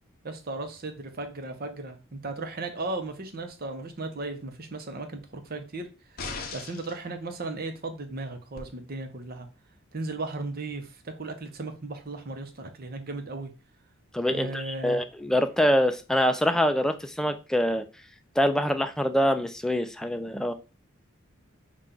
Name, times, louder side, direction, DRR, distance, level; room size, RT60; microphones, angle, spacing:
voice 1, 0.2-5.9 6.5-9.5 9.9-13.5 14.3-15.0, right 2 dB, 45° right, 0.8 m, -36 dB
sound 1, 6.2-7.0 8.6-8.7, left 4 dB, 45° left, 0.8 m, -37 dB
voice 2, 14.1-17.8 18.4-20.5, equal, 5° left, 0.3 m, -25 dB
5.6 x 2.4 x 3.8 m
head